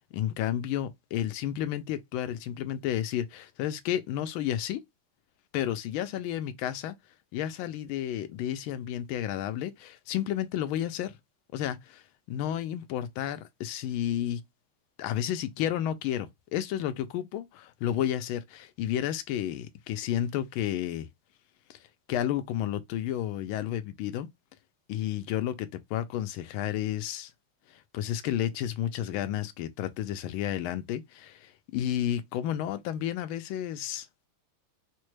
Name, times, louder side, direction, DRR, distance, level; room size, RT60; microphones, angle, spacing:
voice 1, 0.1-4.8 5.5-6.9 7.3-11.2 11.5-12.0 12.3-14.4 15.0-21.1 21.7-21.8 22.1-24.3 24.9-27.3 27.7-34.1, left 11 dB, 80° left, 1.3 m, -31 dB
4.1 x 2.2 x 3.1 m
omnidirectional pair, 2.4 m